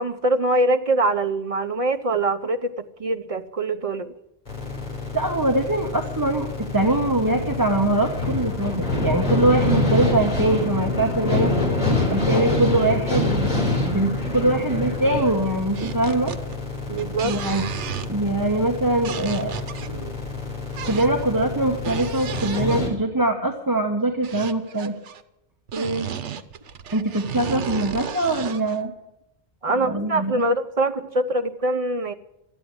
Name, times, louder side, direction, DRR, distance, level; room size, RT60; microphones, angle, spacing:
voice 1, 0.0-4.1 13.5-13.6 16.9-17.3 19.8-20.2 25.7-26.3 29.6-32.1, right 2 dB, 35° right, 8 dB, 0.7 m, -24 dB
sound 1, 4.5-22.9, left 2 dB, 35° left, 4.0 m, -26 dB
voice 2, 5.1-11.5 12.1-13.5 13.8-16.3 17.2-17.6 18.1-19.5 20.8-25.0 26.9-28.9 29.8-30.5, right 2 dB, 20° right, 2 dB, 1.0 m, -23 dB
sound 2, 15.8-16.6 16.9-18.3 19.0-19.9 20.7-21.2 21.7-23.0 24.2-25.2 25.7-28.8, right 8 dB, 85° right, 1.1 m, -33 dB
13.0 x 9.0 x 9.6 m, 0.84 s
omnidirectional pair, 1.2 m